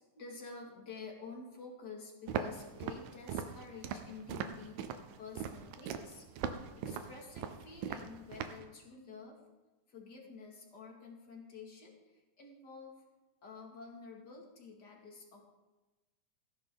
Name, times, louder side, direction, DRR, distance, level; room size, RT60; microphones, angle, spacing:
voice 1, 0.0-6.3 6.8-9.4 9.9-13.0 13.4-15.4, left 4 dB, 35° left, 0 dB, 2.1 m, -50 dB
Walk footsteps, 2.3-8.7, right 8 dB, 85° right, 2.5 m, -40 dB
16.0 x 11.5 x 3.8 m, 1.1 s
omnidirectional pair, 4.1 m